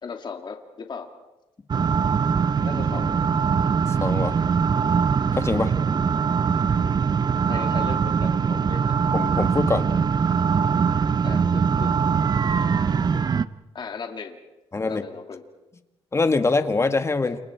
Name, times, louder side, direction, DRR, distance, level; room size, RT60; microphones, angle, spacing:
voice 1, 0.0-1.1 2.6-3.2 7.5-8.9 11.2-11.9 13.1-13.2 13.7-14.4 14.8-15.4 17.2-17.4, left 5 dB, 45° left, 4 dB, 2.8 m, -36 dB
sound 1, 1.7-13.4, right 6 dB, 40° right, 0.8 m, -22 dB
voice 2, 3.9-4.4 5.3-5.7 9.1-9.9 14.7-15.0 16.1-17.4, left 3 dB, 25° left, 8 dB, 1.9 m, -23 dB
30.0 x 28.5 x 4.7 m, 0.96 s
cardioid pair, 105°, 11 cm